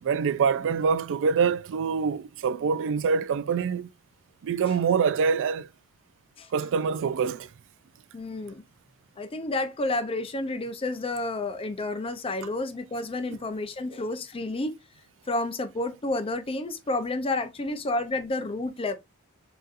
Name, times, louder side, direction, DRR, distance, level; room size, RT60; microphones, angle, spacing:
voice 1, 0.0-3.9 4.4-5.7 6.5-7.5, right 6 dB, 60° right, 0.4 m, -25 dB
voice 2, 8.1-8.6 9.2-14.8 15.3-18.9, left 2 dB, 25° left, 0.5 m, -30 dB
4.0 x 3.9 x 2.5 m
head